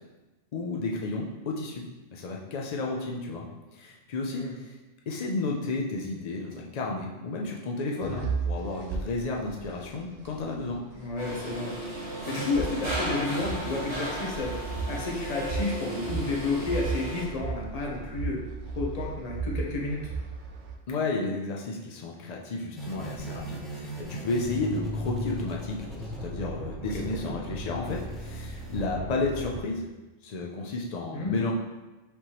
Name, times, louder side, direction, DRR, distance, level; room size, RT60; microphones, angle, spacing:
voice 1, 0.5-1.8 2.1-3.5 3.7-4.7 5.1-10.8 20.9-25.8 26.2-29.9 30.2-31.5, left 3 dB, 80° left, -1 dB, 0.3 m, -32 dB
sound 1, 8.0-20.7, right 4 dB, 60° right, 0.5 m, -36 dB
voice 2, 10.9-11.7 12.3-18.4 18.7-20.1 26.9-27.4 31.1-31.4, left 3 dB, 40° left, -1 dB, 0.7 m, -31 dB
sound 2, 11.2-17.2, equal, 85° right, 1.9 m, -35 dB
sound 3, 22.7-29.6, equal, ahead, 0.3 m, -36 dB
5.2 x 3.0 x 2.9 m, 1.1 s
omnidirectional pair, 1.3 m